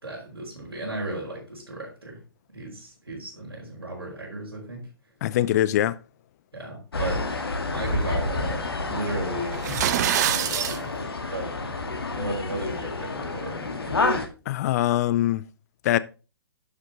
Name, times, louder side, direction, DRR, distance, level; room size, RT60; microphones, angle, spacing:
voice 1, 0.0-2.2 2.5-4.9 6.5-7.5 7.7-10.1 10.4-11.9 12.1-14.0, right 2 dB, 85° right, 5.4 m, -35 dB
voice 2, 5.2-6.0 14.5-15.4 15.8-16.0, left 13 dB, 45° left, 0.6 m, -22 dB
sound 1, 6.9-14.3, left 3 dB, 80° left, 2.0 m, -29 dB
sound 2, 9.5-10.8, right 11 dB, 45° right, 0.7 m, -24 dB
11.0 x 5.2 x 3.9 m
figure-of-eight pair, 125°, 12 cm